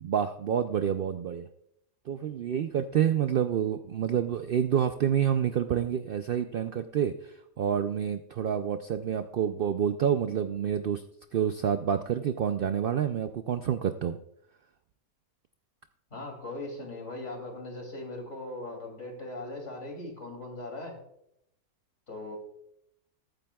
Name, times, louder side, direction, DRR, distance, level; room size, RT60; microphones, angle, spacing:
voice 1, 0.0-1.5 2.1-11.0 11.3-14.2, right 9 dB, 85° right, 9 dB, 0.4 m, -28 dB
voice 2, 16.1-21.0 22.1-22.4, left 2 dB, 50° left, 1 dB, 3.1 m, -39 dB
21.5 x 8.9 x 2.3 m, 0.76 s
omnidirectional pair, 1.5 m